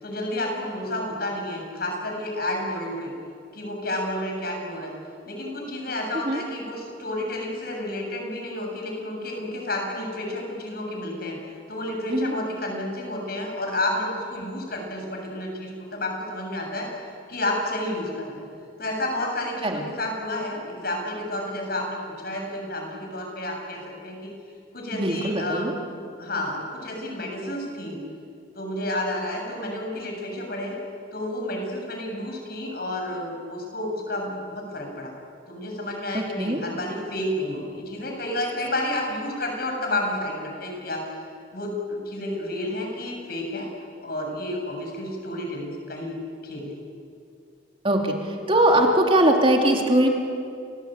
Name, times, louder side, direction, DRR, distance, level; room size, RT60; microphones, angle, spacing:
voice 1, 0.0-3.1 3.5-4.9 5.3-11.4 11.7-16.9 17.3-18.4 18.8-24.3 24.7-25.7 26.2-28.0 28.6-30.8 31.1-35.1 35.5-41.0 41.5-43.7 44.0-46.2 46.4-46.8, left 1 dB, 55° left, 1 dB, 7.4 m, -30 dB
voice 2, 24.9-25.7 36.1-36.6 47.8-48.2 48.5-50.1, right 1 dB, 30° right, 1 dB, 2.9 m, -21 dB
29.5 x 20.5 x 9.1 m, 2.4 s
head